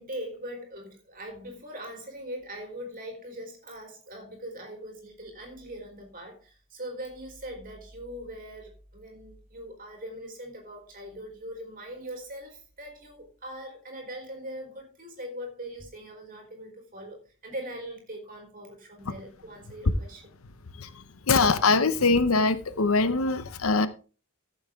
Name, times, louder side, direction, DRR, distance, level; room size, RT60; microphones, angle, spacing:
voice 1, 0.0-20.3, equal, 40° right, 4.1 m, -41 dB
voice 2, 20.8-23.9, left 3 dB, 70° left, 0.8 m, -23 dB
14.5 x 7.3 x 3.6 m
head